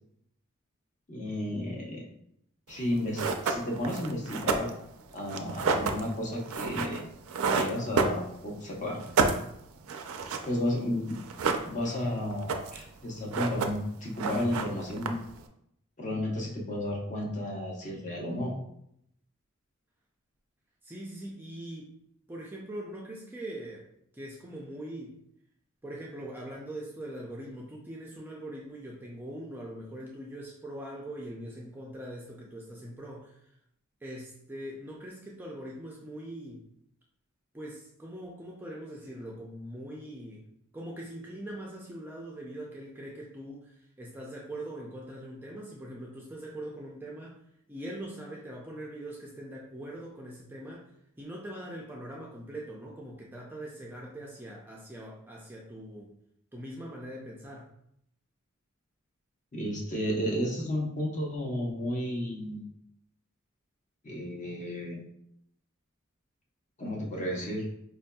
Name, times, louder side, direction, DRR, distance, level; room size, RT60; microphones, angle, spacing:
voice 1, 1.1-2.1 2.7-4.7 5.1-7.0 7.5-9.0 10.4-11.2 11.7-15.2 16.0-18.5 59.5-62.7 64.0-65.0 66.8-67.6, left 1 dB, 35° left, -2 dB, 0.8 m, -32 dB
sound 1, 2.8-2.9 3.1-8.6 8.9-10.5 10.8-10.9 11.1-12.0 12.3-12.9 13.2-13.9 14.2-15.4, right 4 dB, 75° right, 0.4 m, -30 dB
voice 2, 20.8-21.9 22.3-23.9 24.1-25.2 25.8-33.3 34.0-36.6 37.5-40.4 40.7-43.7 44.0-47.4 47.7-50.9 51.2-56.1 56.5-57.7, right 1 dB, 10° right, -3 dB, 0.4 m, -42 dB
4.5 x 2.6 x 2.2 m, 0.74 s
head